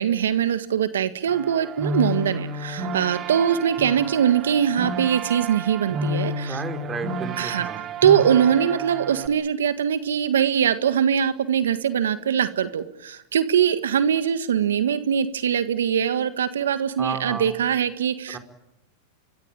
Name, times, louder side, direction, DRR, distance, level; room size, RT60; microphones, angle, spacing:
voice 1, 0.0-6.6 7.4-7.7 8.0-18.4, right 8 dB, 80° right, 11 dB, 1.7 m, -22 dB
sound 1, 1.3-9.3, right 1 dB, 40° right, 3.3 m, -31 dB
voice 2, 6.5-7.8 17.0-17.6 18.3-18.4, right 5 dB, 20° right, 6 dB, 4.8 m, -32 dB
25.5 x 24.0 x 9.0 m, 0.83 s
hypercardioid pair, 105°, 0 cm